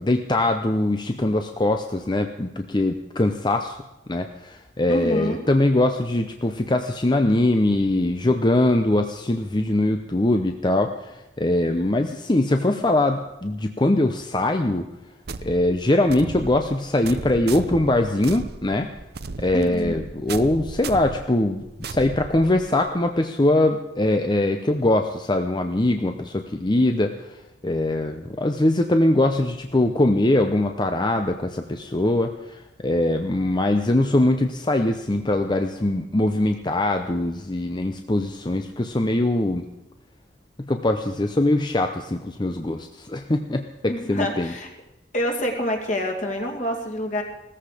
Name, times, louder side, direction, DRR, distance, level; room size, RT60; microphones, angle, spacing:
voice 1, 0.0-3.8 4.1-14.9 15.4-18.9 19.4-27.1 27.6-39.6 40.6-44.5, left 1 dB, 25° left, 6 dB, 0.7 m, -22 dB
voice 2, 4.9-5.4 19.5-20.0 43.9-44.7 45.1-47.2, equal, 40° left, 2 dB, 2.6 m, -27 dB
sound 1, 15.3-22.9, right 3 dB, 55° right, 0.7 m, -36 dB
17.5 x 14.5 x 5.0 m, 0.94 s
head